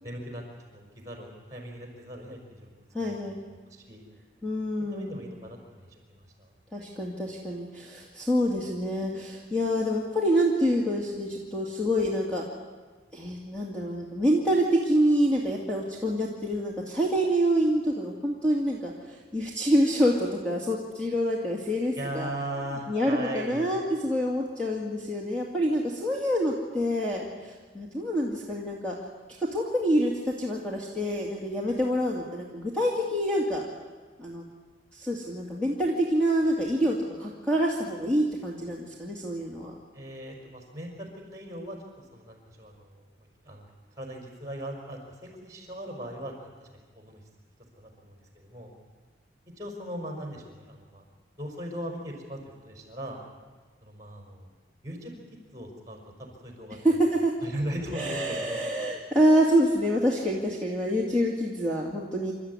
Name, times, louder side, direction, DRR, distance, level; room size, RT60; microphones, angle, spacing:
voice 1, 0.0-0.4 0.7-3.2 3.7-4.0 4.9-6.5 22.0-23.7 39.9-43.7 43.9-46.7 47.0-47.2 47.8-48.7 49.6-51.0 51.4-52.4 52.6-53.2 53.8-54.5 54.8-55.1 55.5-57.0 57.4-58.8, right 1 dB, 20° right, 1 dB, 5.3 m, -39 dB
voice 2, 2.9-3.4 4.4-5.2 6.7-12.4 13.1-22.3 22.9-28.9 29.4-33.6 34.2-34.4 34.9-39.7 56.8-57.3 57.9-62.3, equal, 5° left, -3 dB, 2.3 m, -26 dB
27.5 x 13.5 x 9.7 m, 1.4 s
head